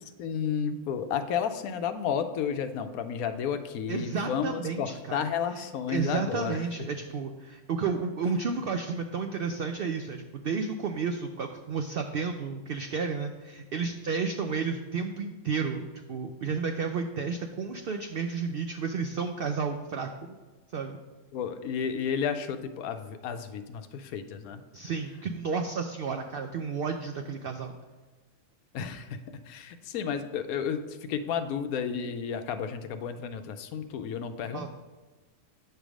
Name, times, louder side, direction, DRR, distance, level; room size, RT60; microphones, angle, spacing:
voice 1, 0.2-6.9 21.3-24.6 28.7-29.1 29.5-34.7, left 7 dB, 80° left, 9 dB, 1.0 m, -32 dB
voice 2, 3.9-5.3 5.6-15.8 16.1-20.1 20.7-21.0 24.7-27.7 34.5-34.7, right 5 dB, 90° right, 5 dB, 0.5 m, -32 dB
8.4 x 3.4 x 6.1 m, 1.3 s
omnidirectional pair, 1.6 m